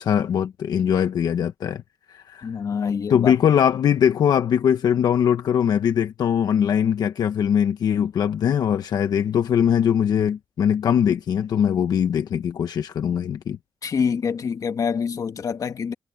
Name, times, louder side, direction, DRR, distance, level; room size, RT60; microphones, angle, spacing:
voice 1, 0.0-1.8 2.1-2.5 3.1-13.6, left 8 dB, 80° left, 1.0 m, -21 dB
voice 2, 2.4-3.3 13.8-15.9, left 6 dB, 55° left, 1.9 m, -26 dB
cardioid pair, 100°, 7 cm